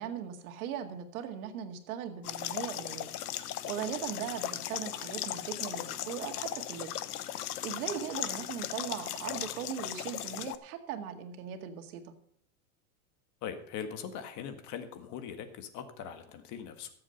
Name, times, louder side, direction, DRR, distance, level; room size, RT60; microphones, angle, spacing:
voice 1, 0.0-3.1 3.7-6.9 7.6-12.1, right 9 dB, 70° right, 5 dB, 2.0 m, -39 dB
sound 1, 2.2-10.6, left 12 dB, 85° left, 1.0 m, -37 dB
voice 2, 13.4-16.9, left 7 dB, 40° left, 8 dB, 1.7 m, -41 dB
13.5 x 7.7 x 5.4 m, 0.62 s
supercardioid pair, 130°, 45 cm